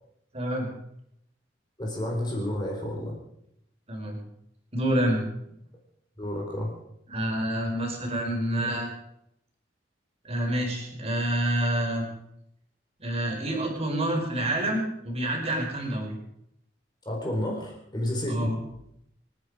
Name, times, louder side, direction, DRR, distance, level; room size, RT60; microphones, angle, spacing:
voice 1, 0.3-0.7 3.9-4.2 4.7-5.2 7.1-8.9 10.2-12.0 13.0-16.2 18.3-18.6, right 1 dB, 35° right, 1 dB, 4.9 m, -28 dB
voice 2, 1.8-3.1 6.2-6.7 17.0-18.5, left 1 dB, 25° left, -1 dB, 4.2 m, -30 dB
28.0 x 10.0 x 5.0 m, 0.76 s
head